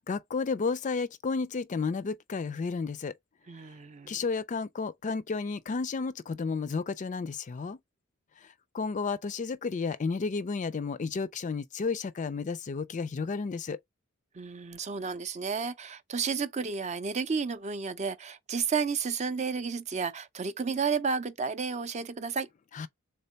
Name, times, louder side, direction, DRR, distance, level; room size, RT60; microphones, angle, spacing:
voice 1, 0.1-3.1 4.1-7.8 8.4-8.5 8.7-13.8 22.7-22.9, left 4 dB, 35° left, 0.4 m, -32 dB
voice 2, 3.5-4.2 14.3-22.5, right 5 dB, 35° right, 0.5 m, -32 dB
3.6 x 3.3 x 4.0 m
head